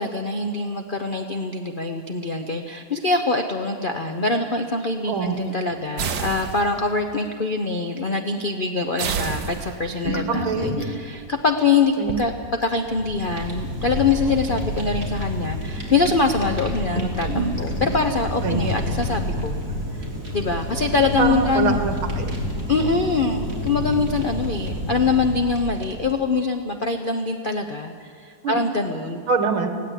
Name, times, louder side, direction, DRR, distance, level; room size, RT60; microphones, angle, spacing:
voice 1, 0.0-12.3 12.6-19.6 20.3-21.8 22.7-29.2, left 4 dB, 60° left, 5 dB, 0.5 m, -24 dB
sound 1, 5.2-5.8 6.0-6.1 6.4-6.6 7.1-7.2 9.7-12.3 13.9-14.7 15.5-15.6 15.7-15.9 16.5-18.2 20.3-21.3 22.5-22.6 23.2-23.3, right 1 dB, 20° left, 1.5 m, -31 dB
sound 2, 6.0-7.0 9.0-10.1, right 6 dB, 60° right, 1.5 m, -29 dB
voice 2, 10.3-10.7 12.0-12.2 18.4-18.6 21.2-22.3 28.4-28.6 29.3-29.7, right 5 dB, 75° right, 6 dB, 2.3 m, -24 dB
Fire, 12.8-26.2, left 1 dB, 40° right, 3.7 m, -29 dB
19.5 x 17.0 x 8.2 m, 2.1 s
omnidirectional pair, 2.3 m